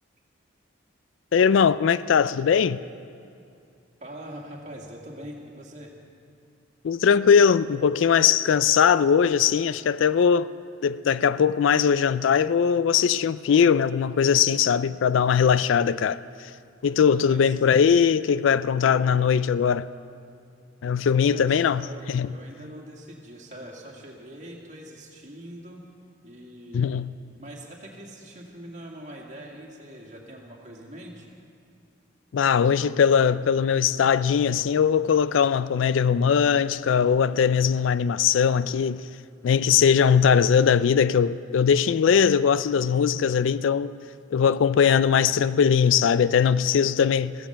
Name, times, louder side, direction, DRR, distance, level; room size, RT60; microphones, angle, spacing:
voice 1, 1.3-2.8 6.8-10.5 10.8-16.2 16.8-19.9 20.8-22.3 26.7-27.1 32.3-39.0 39.4-43.9 44.3-47.4, left 7 dB, 75° left, 0.4 m, -20 dB
voice 2, 4.0-5.9 17.2-17.9 21.0-25.8 26.2-26.9 27.4-31.3, right 1 dB, 40° right, 2.3 m, -43 dB
15.5 x 14.5 x 5.7 m
head